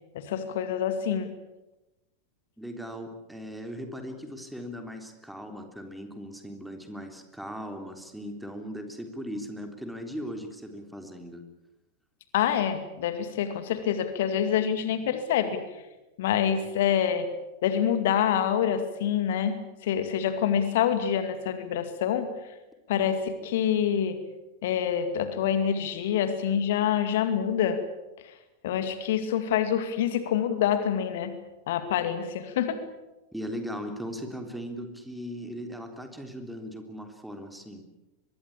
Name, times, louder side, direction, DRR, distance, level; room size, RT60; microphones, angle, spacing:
voice 1, 0.1-1.3 12.3-15.8 16.2-17.3 17.6-19.5 19.8-22.3 22.9-24.2 24.6-27.8 28.2-28.3 28.6-31.3 31.7-32.8, left 9 dB, 55° left, 10 dB, 2.3 m, -26 dB
voice 2, 2.6-11.4 33.3-37.8, equal, ahead, 5 dB, 3.6 m, -38 dB
24.0 x 21.5 x 8.6 m, 1.0 s
figure-of-eight pair, 90°, 0 cm